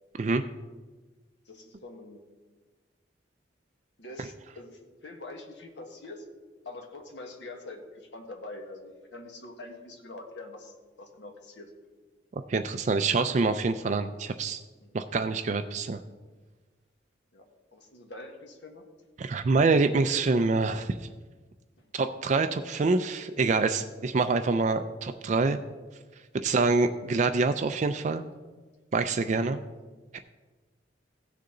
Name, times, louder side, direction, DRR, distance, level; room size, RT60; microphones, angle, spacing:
voice 1, 1.4-2.2 4.0-6.3 6.6-11.7 14.8-15.0 17.3-18.8 21.8-21.9 24.9-25.0 29.5-29.6 30.1-30.2, left 2 dB, 70° left, 3 dB, 1.5 m, -45 dB
voice 2, 12.3-14.6 14.9-16.0 19.2-21.0 21.9-25.6 26.4-28.2 28.9-29.6 30.1-30.2, right 3 dB, 40° right, 8 dB, 0.4 m, -26 dB
16.0 x 6.7 x 3.8 m, 1.3 s
head